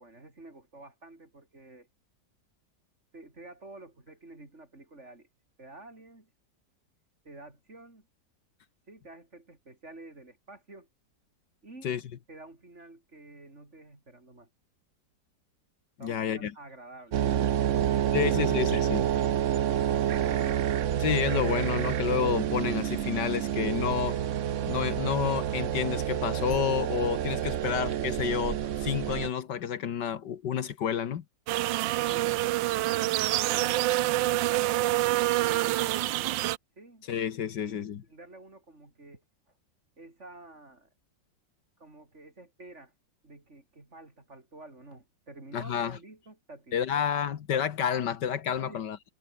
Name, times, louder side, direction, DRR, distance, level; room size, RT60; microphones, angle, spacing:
voice 1, 0.0-1.9 3.1-5.3 5.6-6.3 7.2-8.1 8.9-10.9 11.6-12.0 12.3-14.5 16.0-20.5 27.5-27.7 35.4-36.4 36.8-37.1 37.5-39.2 40.0-40.9 41.8-42.9 43.2-47.3 48.6-48.9, right 2 dB, 35° right, 4.8 m, -50 dB
voice 2, 16.0-16.5 18.1-19.1 21.0-24.2 24.7-31.2 37.1-38.0 45.5-46.0 46.7-49.0, left 8 dB, 70° left, 1.8 m, -30 dB
sound 1, 17.1-29.3, right 10 dB, 55° right, 0.9 m, -28 dB
sound 2, 31.5-36.6, right 16 dB, 90° right, 1.3 m, -26 dB
omnidirectional pair, 2.0 m